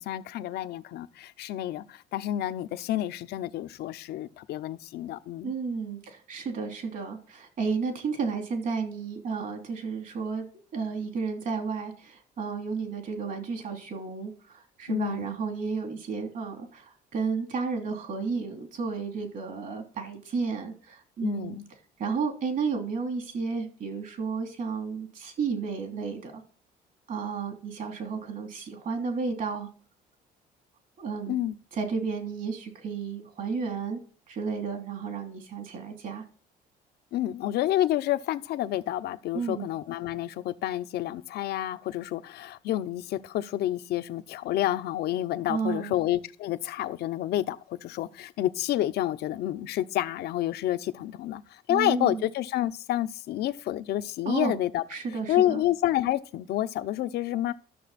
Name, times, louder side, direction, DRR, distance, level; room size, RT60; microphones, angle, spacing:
voice 1, 0.0-5.5 14.9-15.3 21.2-21.6 31.3-31.5 37.1-54.8 55.3-57.5, left 13 dB, 75° left, 0.7 m, -29 dB
voice 2, 5.4-10.5 10.7-21.6 22.0-26.4 27.1-29.7 31.0-31.4 31.7-34.0 34.3-36.2 39.3-39.7 45.5-45.9 51.7-52.2 54.2-54.6 54.9-55.6, right 5 dB, 55° right, 3.0 m, -32 dB
12.5 x 6.8 x 4.2 m
cardioid pair, 110°, 17 cm